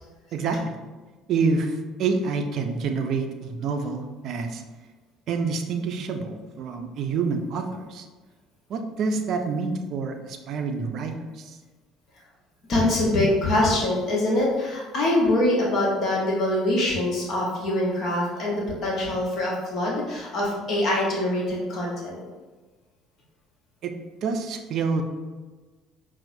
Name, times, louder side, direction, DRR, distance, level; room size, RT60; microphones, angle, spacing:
voice 1, 0.3-0.7 1.3-4.6 5.3-8.1 8.7-11.6 23.8-23.9 24.2-25.0, right 4 dB, 50° right, 5 dB, 0.4 m, -27 dB
voice 2, 12.7-22.2, left 1 dB, 50° left, -3 dB, 0.9 m, -24 dB
5.7 x 2.0 x 2.6 m, 1.3 s
figure-of-eight pair, 55°, 0 cm